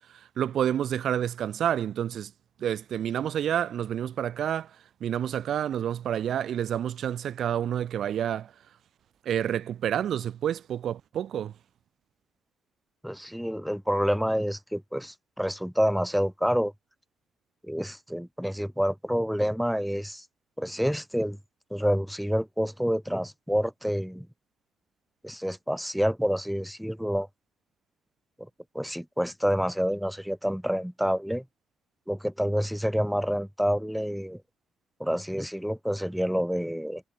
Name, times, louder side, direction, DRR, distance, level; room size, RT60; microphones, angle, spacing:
voice 1, 0.1-2.3 2.6-4.7 5.0-8.5 9.2-11.5, right 10 dB, 65° right, 4.2 m, -29 dB
voice 2, 13.0-16.7 17.6-20.2 20.6-21.4 21.7-24.3 25.2-27.3 28.4-28.5 28.7-31.4 32.1-34.4 35.0-37.0, equal, ahead, 2.9 m, -28 dB
cardioid pair, 90°, 0 cm